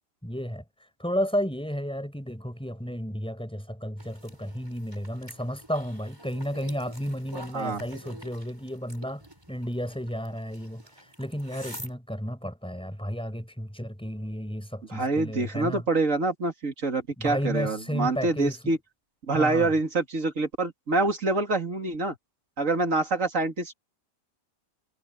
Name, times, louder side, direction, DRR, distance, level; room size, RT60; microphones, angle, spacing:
voice 1, 0.2-0.6 1.0-9.2 9.5-10.8 11.2-15.8 17.2-18.7 19.3-19.7, equal, 5° left, 4.4 m, -32 dB
sound 1, 4.0-11.9, right 1 dB, 15° right, 7.3 m, -47 dB
voice 2, 14.9-18.8 19.3-22.1 22.6-23.7, right 3 dB, 45° right, 2.8 m, -26 dB
omnidirectional pair, 1.9 m